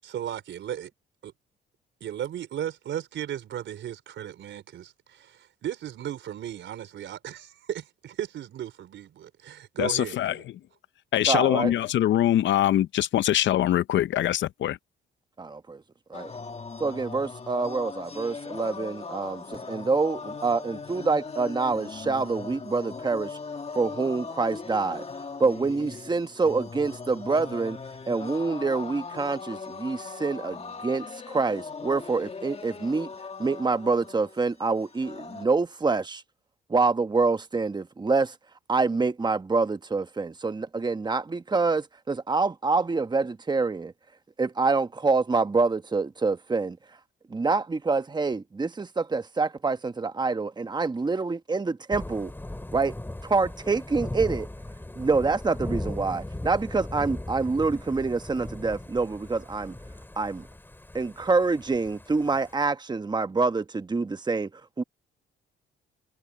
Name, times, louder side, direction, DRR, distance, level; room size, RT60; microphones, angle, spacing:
voice 1, 0.0-0.9 1.2-1.3 2.0-10.4, right 10 dB, 70° right, 4.2 m, -36 dB
voice 2, 9.8-10.5 11.1-14.8, left 12 dB, 70° left, 0.7 m, -23 dB
voice 3, 11.3-11.7 15.4-15.8 16.1-16.3 16.8-23.4 23.7-25.0 25.4-27.8 28.1-33.1 33.4-36.2 36.7-38.3 38.7-43.9 44.4-46.8 47.3-52.3 52.7-52.9 53.2-54.5 55.0-59.7 60.2-60.4 60.9-64.5 64.8-64.9, right 4 dB, 20° right, 1.3 m, -26 dB
sound 1, 16.1-35.5, left 4 dB, 30° left, 2.3 m, -39 dB
Thunder / Rain, 51.9-62.5, left 1 dB, 10° left, 3.3 m, -38 dB
cardioid pair, 90°, 20 cm